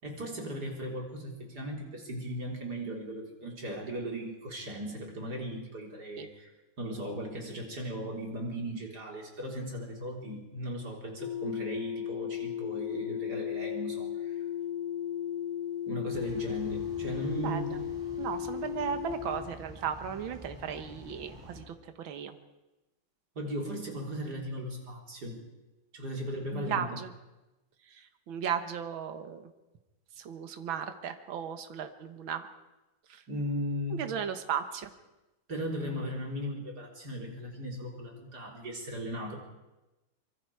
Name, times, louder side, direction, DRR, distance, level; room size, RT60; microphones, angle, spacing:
voice 1, 0.0-6.5 6.8-14.4 15.9-17.8 23.4-25.4 25.9-27.0 33.3-34.1 35.5-39.4, equal, 55° right, 0 dB, 4.2 m, -37 dB
sound 1, 11.2-19.5, left 10 dB, 85° left, 3.0 m, -35 dB
sound 2, 16.1-21.6, equal, 10° right, 4.3 m, -49 dB
voice 2, 17.3-17.8 18.2-22.3 26.5-27.1 27.9-29.5 30.2-32.5 33.1-33.2 33.9-34.9, right 8 dB, 80° right, 8 dB, 2.1 m, -36 dB
25.0 x 23.5 x 4.8 m, 1.0 s
omnidirectional pair, 2.1 m